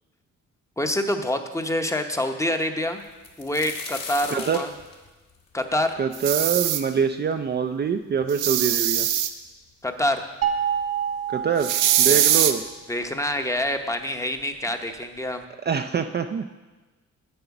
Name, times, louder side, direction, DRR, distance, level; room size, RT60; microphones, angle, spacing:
voice 1, 0.8-3.0 3.4-4.7 5.5-5.9 9.8-10.2 12.1-12.3 12.9-15.4, left 1 dB, 10° left, 6 dB, 0.8 m, -26 dB
sound 1, 3.0-6.8 7.3-7.4 8.2-8.3 8.5-9.2 10.1-10.2 10.6-10.8, left 4 dB, 60° left, 1.7 m, -38 dB
voice 2, 4.3-4.6 6.0-9.1 11.3-12.6 15.6-16.5, right 6 dB, 35° right, 6 dB, 0.4 m, -25 dB
sound 2, 6.1-6.8 8.3-9.3 11.6-12.5, right 11 dB, 85° right, 0.7 m, -21 dB
sound 3, 10.4-12.7, right 8 dB, 55° right, 0.8 m, -28 dB
7.9 x 7.8 x 5.9 m, 1.2 s
cardioid pair, 90°, 30 cm